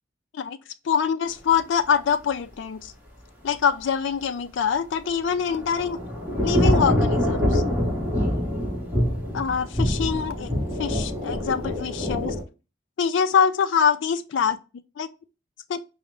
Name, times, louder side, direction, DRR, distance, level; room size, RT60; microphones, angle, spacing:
voice 1, 0.8-2.9 3.4-6.0 6.4-7.6 9.3-10.5 10.8-12.4 13.0-14.6 15.0-15.1 15.7-15.8, left 7 dB, 65° left, 0.3 m, -24 dB
Thunder / Rain, 5.0-12.4, left 1 dB, 10° right, 1.1 m, -25 dB
4.8 x 2.0 x 3.3 m
head